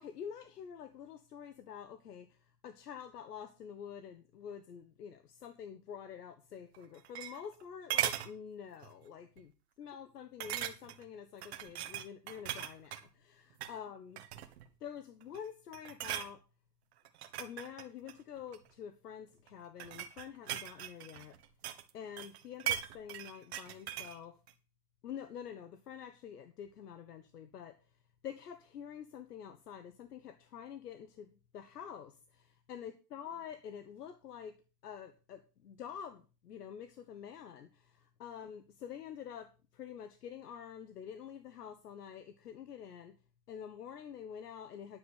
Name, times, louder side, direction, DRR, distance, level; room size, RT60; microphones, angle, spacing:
voice 1, 0.0-2.4 2.6-9.5 9.8-14.2 14.8-16.4 17.4-21.3 21.9-24.3 25.0-27.7 28.2-34.6 34.8-43.1 43.5-45.0, left 8 dB, 70° left, 9 dB, 1.4 m, -47 dB
sound 1, 6.7-7.6 7.9-8.3 8.8-9.0 9.4-9.5 10.4-11.0 11.4-13.0 13.5-13.8 14.2-14.7 15.2-15.5 15.7-16.3 17.0-18.7 19.5-21.9 22.2-24.2 24.5-24.6, right 12 dB, 40° right, 1.3 m, -39 dB
10.5 x 7.4 x 6.5 m, 0.35 s
hypercardioid pair, 160°, 49 cm